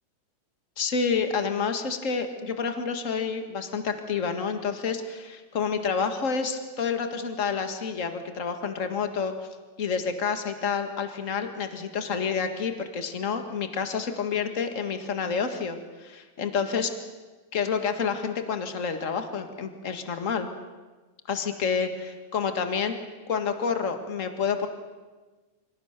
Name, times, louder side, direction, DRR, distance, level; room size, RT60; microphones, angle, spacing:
voice 1, 0.8-9.3 9.8-16.9 17.5-20.5 21.3-23.0 23.3-24.7, left 6 dB, 30° left, 7 dB, 1.4 m, -29 dB
28.0 x 25.0 x 6.8 m, 1.3 s
omnidirectional pair, 3.9 m